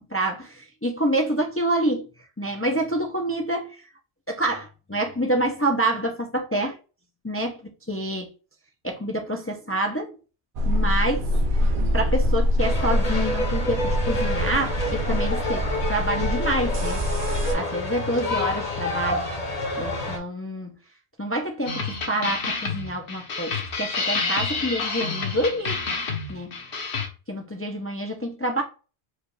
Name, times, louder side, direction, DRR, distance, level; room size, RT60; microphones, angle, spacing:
voice 1, 0.1-2.1 2.4-3.8 4.3-6.8 7.2-8.3 8.8-10.2 10.6-11.3 11.5-11.6 11.9-17.0 17.5-19.3 19.8-20.7 21.2-25.8 26.3-26.5 27.3-28.6, right 1 dB, 20° left, 0.3 m, -27 dB
sound 1, 10.6-17.5, equal, 60° right, 0.7 m, -24 dB
sound 2, 12.6-20.2, left 2 dB, 40° left, 0.9 m, -28 dB
sound 3, 21.7-27.1, left 4 dB, 60° left, 1.0 m, -29 dB
4.8 x 2.3 x 3.1 m
omnidirectional pair, 1.1 m